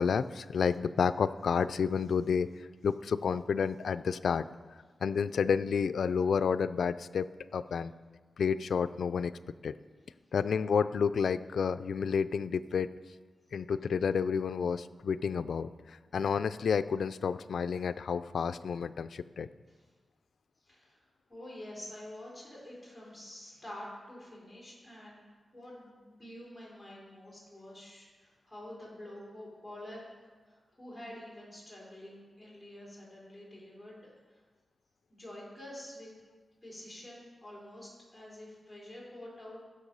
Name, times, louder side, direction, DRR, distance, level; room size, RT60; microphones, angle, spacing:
voice 1, 0.0-4.5 5.0-7.3 7.5-7.9 8.4-9.3 9.6-9.7 10.3-12.9 13.5-19.5, left 6 dB, 90° left, 14 dB, 0.4 m, -30 dB
voice 2, 20.6-25.2 25.5-30.1 30.4-34.0 34.3-34.4 35.1-36.1 36.6-39.7, left 1 dB, 10° left, -5 dB, 4.3 m, -48 dB
14.5 x 6.7 x 5.5 m, 1.4 s
wide cardioid pair, 125°, 0 cm